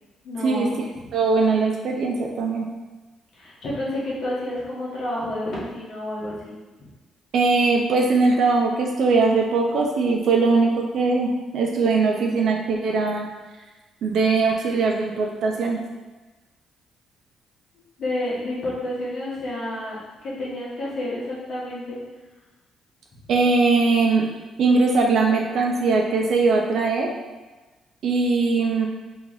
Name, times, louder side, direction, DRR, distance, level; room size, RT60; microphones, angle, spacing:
voice 1, 0.2-1.0 3.3-6.5 18.0-22.0, left 1 dB, 65° left, -7 dB, 1.2 m, -30 dB
voice 2, 1.1-2.7 7.3-13.3 14.0-15.8 23.3-24.2 24.6-27.1 28.0-28.9, right 4 dB, 70° right, 1 dB, 0.4 m, -20 dB
3.0 x 2.8 x 3.9 m, 1.2 s
cardioid pair, 90°, 0 cm